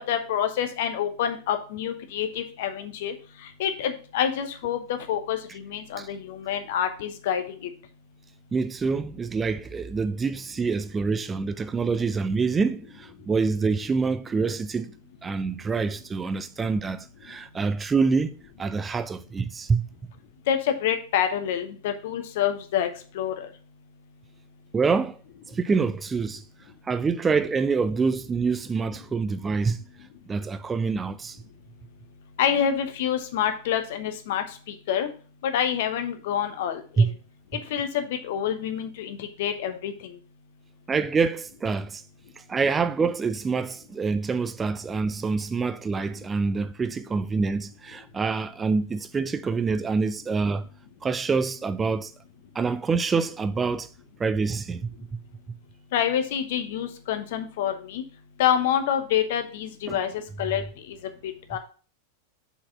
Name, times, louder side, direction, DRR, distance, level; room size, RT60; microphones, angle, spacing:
voice 1, 0.0-3.1 3.6-7.7 20.5-22.9 23.1-23.5 32.4-35.1 35.4-37.1 37.7-40.2 55.9-58.0 58.4-61.0 61.2-61.6, left 9 dB, 55° left, 0.9 m, -27 dB
voice 2, 8.5-14.9 15.2-19.8 24.7-25.2 25.5-26.4 26.9-29.8 30.3-31.4 37.0-37.1 40.9-42.0 42.5-50.7 51.0-52.1 52.5-53.9 54.2-54.8 59.9-60.0, right 4 dB, 15° right, 0.5 m, -26 dB
5.1 x 4.3 x 5.8 m
figure-of-eight pair, 90°, 0 cm